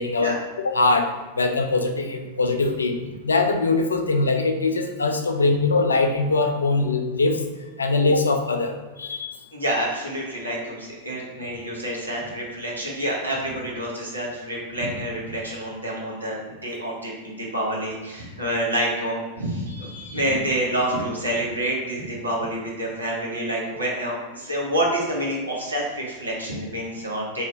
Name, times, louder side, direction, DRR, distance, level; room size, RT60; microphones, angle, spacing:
voice 1, 0.0-3.0 3.2-7.4 7.8-9.4, left 3 dB, 75° left, 5 dB, 0.3 m, -22 dB
voice 2, 9.5-27.4, right 1 dB, 80° right, -3 dB, 0.8 m, -28 dB
2.7 x 2.5 x 3.1 m, 1.2 s
figure-of-eight pair, 90°, 0 cm